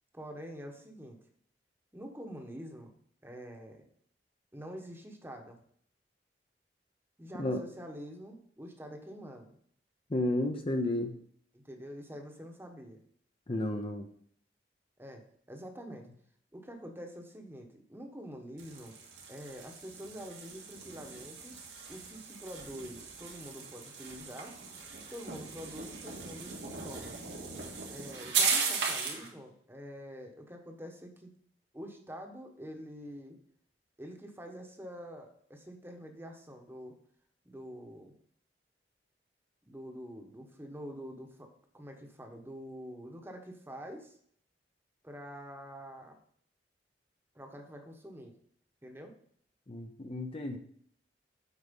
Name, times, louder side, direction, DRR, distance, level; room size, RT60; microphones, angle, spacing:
voice 1, 0.1-1.2 1.9-2.9 3.2-3.9 4.5-5.6 7.2-9.5 11.5-13.0 15.0-15.2 15.5-16.1 16.5-19.0 19.3-21.6 21.9-24.6 25.1-27.1 27.9-31.3 31.7-33.4 34.0-37.0 37.4-38.1 39.7-41.5 41.7-44.1 45.0-46.2 47.3-48.3 48.8-49.1, equal, 15° right, 3 dB, 1.1 m, -46 dB
voice 2, 10.1-11.1 13.5-14.1 49.7-50.6, left 1 dB, 35° left, 5 dB, 0.7 m, -32 dB
sound 1, 18.6-29.3, right 5 dB, 80° right, 2.1 m, -37 dB
8.3 x 4.8 x 5.3 m, 0.62 s
head